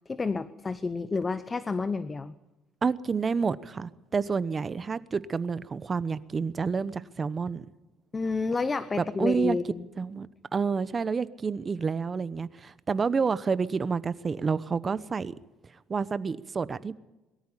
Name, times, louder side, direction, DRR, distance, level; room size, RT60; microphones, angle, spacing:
voice 1, 0.1-2.3 8.1-9.9, left 4 dB, 20° left, 0.8 m, -30 dB
voice 2, 2.8-7.6 9.2-9.6 10.0-10.3 10.5-15.3 15.9-16.9, right 5 dB, 25° right, 0.9 m, -29 dB
22.5 x 14.0 x 10.0 m
cardioid pair, 125°, 0 cm